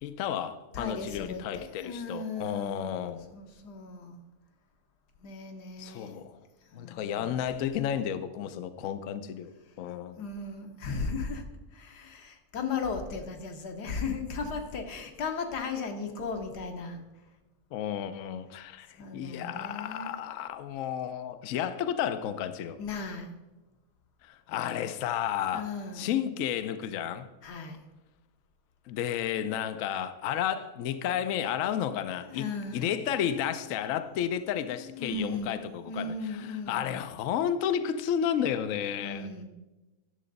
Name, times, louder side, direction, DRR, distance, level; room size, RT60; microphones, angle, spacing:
voice 1, 0.0-3.3 5.8-6.4 6.7-9.5 9.8-10.2 17.7-22.8 24.2-27.3 28.9-39.3, left 9 dB, 70° left, 0.8 m, -32 dB
voice 2, 0.7-2.9 3.3-4.2 5.2-6.2 6.7-7.3 10.2-11.4 11.7-17.0 19.0-20.1 22.8-23.3 25.5-26.0 27.4-27.8 32.3-32.9 34.9-36.8 39.0-39.4, left 4 dB, 85° left, 1.6 m, -36 dB
11.0 x 6.7 x 3.9 m
omnidirectional pair, 1.7 m